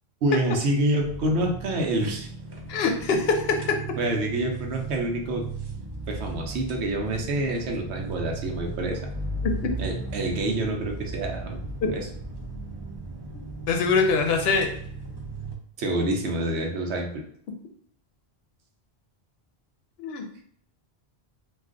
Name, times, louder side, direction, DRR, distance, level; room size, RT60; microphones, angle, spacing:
voice 1, 0.2-2.3 4.0-5.4 6.1-9.0 9.8-11.6 11.8-12.1 15.8-17.2, right 1 dB, 90° right, 2 dB, 0.9 m, -27 dB
car start, 1.0-15.5, right 3 dB, 40° right, 0.4 m, -36 dB
voice 2, 2.7-3.8 13.3-14.7 20.0-20.4, left 4 dB, 70° left, 4 dB, 0.8 m, -24 dB
2.5 x 2.3 x 3.6 m, 0.64 s
omnidirectional pair, 1.1 m